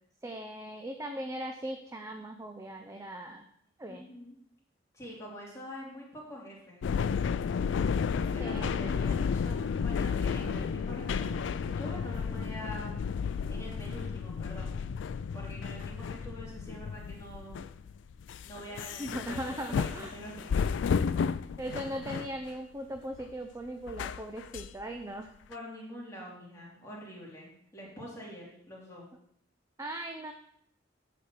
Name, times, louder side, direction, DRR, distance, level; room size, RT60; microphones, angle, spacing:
voice 1, 0.2-3.5 3.8-4.1 8.4-8.8 19.0-20.2 21.6-25.3 29.8-30.3, right 1 dB, 15° right, 4 dB, 0.5 m, -39 dB
voice 2, 3.9-4.4 4.9-6.8 8.1-14.8 15.3-17.6 18.4-20.7 25.5-29.1, equal, 15° left, -5 dB, 2.7 m, -45 dB
sound 1, 6.8-22.5 23.0-23.2 23.9-24.7 25.5-25.6, left 6 dB, 80° left, 0.3 m, -32 dB
8.6 x 4.2 x 6.6 m, 0.70 s
head